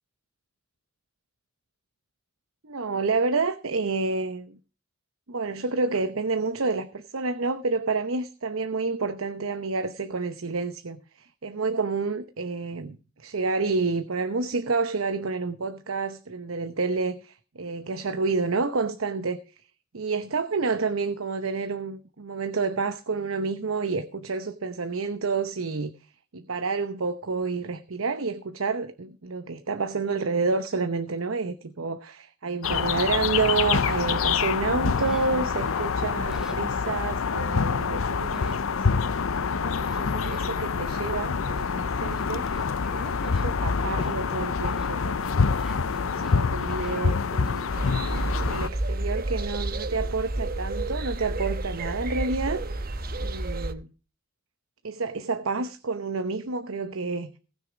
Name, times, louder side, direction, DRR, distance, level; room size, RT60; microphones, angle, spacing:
voice 1, 2.7-4.6 5.3-19.4 19.9-25.9 26.3-39.0 39.6-42.5 42.9-45.4 45.9-47.7 48.1-52.6 53.2-53.9 54.8-57.3, right 4 dB, 85° right, 0.9 m, -29 dB
sound 1, 32.6-48.7, left 5 dB, 85° left, 0.6 m, -26 dB
sound 2, 34.9-37.2 37.9-38.0 38.3-39.5 39.8-41.0 41.5-47.8 48.3-48.4, equal, 5° right, 2.4 m, -51 dB
sound 3, 47.7-53.7, right 2 dB, 45° right, 1.0 m, -30 dB
18.5 x 6.7 x 5.0 m
head